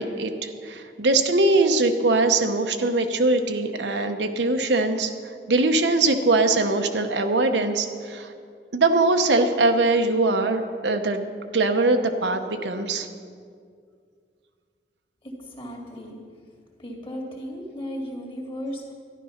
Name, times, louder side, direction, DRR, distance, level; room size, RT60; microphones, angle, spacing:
voice 1, 0.0-5.1 5.5-8.3 8.7-11.2 11.5-13.1, right 2 dB, 80° right, 6 dB, 0.9 m, -22 dB
voice 2, 15.2-16.2 16.8-18.9, equal, 30° left, 0 dB, 2.1 m, -35 dB
12.5 x 11.0 x 5.7 m, 2.2 s
head